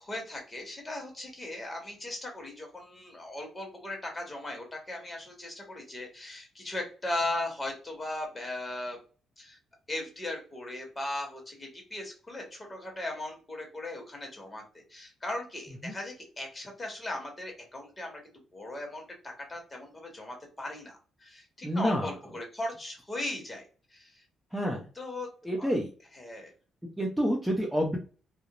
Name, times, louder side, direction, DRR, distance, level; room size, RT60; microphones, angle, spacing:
voice 1, 0.0-9.0 9.4-9.6 9.9-18.2 18.5-24.2 24.9-25.3 25.6-25.7 26.1-26.5, left 1 dB, 20° left, 1 dB, 1.2 m, -38 dB
voice 2, 21.6-22.1 24.5-24.8 25.4-25.9 27.0-28.0, equal, 5° right, -2 dB, 0.6 m, -28 dB
2.4 x 2.0 x 2.9 m, 0.37 s
cardioid pair, 90°, 0 cm